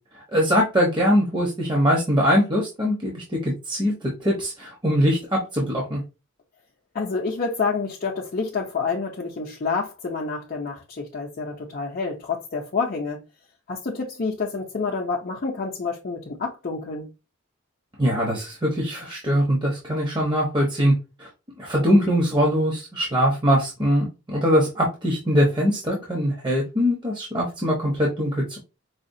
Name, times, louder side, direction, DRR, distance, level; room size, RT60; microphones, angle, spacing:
voice 1, 0.1-6.0 18.0-20.9 21.2-21.3 21.6-28.6, equal, 20° right, 0.9 m, -22 dB
voice 2, 6.9-13.2 13.7-17.1, left 4 dB, 40° left, 0.6 m, -28 dB
4.9 x 2.3 x 2.6 m
head